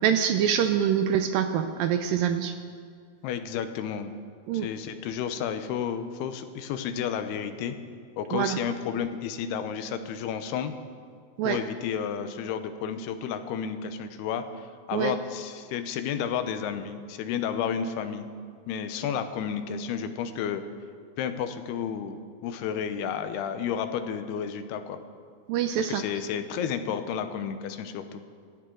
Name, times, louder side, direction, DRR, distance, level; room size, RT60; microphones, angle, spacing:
voice 1, 0.0-2.5 4.5-4.7 8.3-8.6 11.4-11.6 14.9-15.1 25.5-26.0, right 9 dB, 80° right, 7 dB, 2.1 m, -25 dB
voice 2, 3.2-4.1 4.5-7.8 8.2-10.7 11.4-18.3 18.7-20.6 21.2-25.0 25.8-28.2, left 8 dB, 85° left, 9 dB, 2.9 m, -32 dB
27.5 x 13.5 x 3.9 m, 2.2 s
omnidirectional pair, 4.5 m